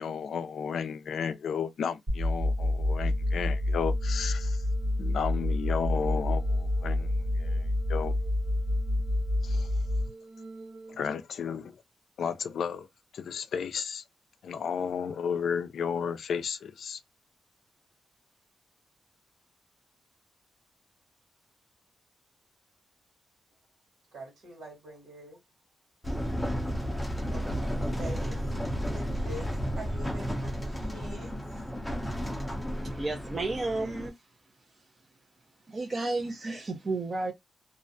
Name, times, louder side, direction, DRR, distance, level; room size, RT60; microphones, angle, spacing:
voice 1, 0.0-4.6 5.0-8.2 9.4-9.7 10.9-11.8 12.2-12.9 13.1-14.0 14.4-17.0, left 7 dB, 80° left, 0.3 m, -33 dB
sound 1, 2.1-11.1, left 1 dB, 65° right, 1.2 m, -28 dB
voice 2, 24.1-25.4 27.3-28.6 28.9-31.6, right 1 dB, 90° right, 1.2 m, -45 dB
sound 2, 26.0-34.1, equal, 5° left, 0.6 m, -33 dB
voice 3, 32.8-34.1 35.7-37.3, right 2 dB, 35° right, 0.6 m, -32 dB
2.4 x 2.1 x 2.6 m
cardioid pair, 105°, 0 cm